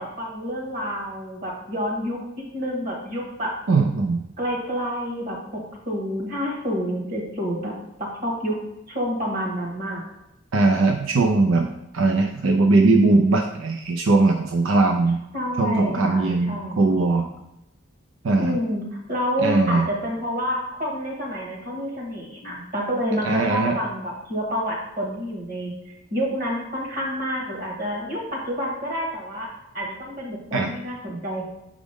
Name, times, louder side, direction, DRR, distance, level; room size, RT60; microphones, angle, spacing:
voice 1, 0.0-2.2 2.5-3.5 4.4-7.7 8.0-8.6 8.9-10.0 15.3-16.8 18.4-25.7 26.1-29.5 29.7-31.5, equal, 45° right, -1 dB, 1.7 m, -28 dB
voice 2, 3.7-4.2 10.5-11.7 11.9-15.2 15.6-17.3 18.2-18.6 19.4-19.9 23.2-23.8 30.5-30.7, right 3 dB, 80° right, 4 dB, 0.5 m, -20 dB
6.3 x 5.0 x 3.5 m, 0.86 s
head